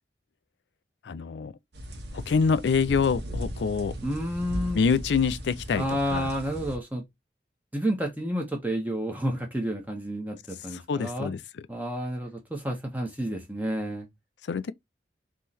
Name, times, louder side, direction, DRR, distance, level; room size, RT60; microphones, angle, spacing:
voice 1, 1.1-1.5 2.1-3.9 4.7-6.3 10.7-11.4 14.5-14.7, left 5 dB, 80° left, 0.4 m, -26 dB
sound 1, 1.7-6.8, equal, 80° right, 1.3 m, -37 dB
voice 2, 4.0-4.8 5.7-7.0 7.7-11.3 11.7-14.1, equal, 10° right, 0.9 m, -30 dB
3.7 x 3.1 x 4.1 m
head